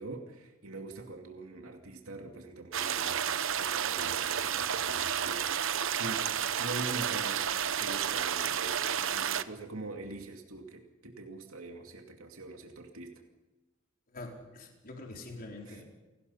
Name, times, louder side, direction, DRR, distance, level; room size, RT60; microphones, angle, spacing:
voice 1, 0.0-3.2 3.6-6.2 6.6-7.5 7.8-13.1 15.7-15.8, right 2 dB, 90° right, 3 dB, 2.5 m, -43 dB
sound 1, 2.7-9.4, right 8 dB, 65° right, 0.9 m, -31 dB
voice 2, 14.1-15.8, left 2 dB, 45° left, 0 dB, 4.5 m, -45 dB
29.5 x 18.5 x 5.7 m, 1.1 s
head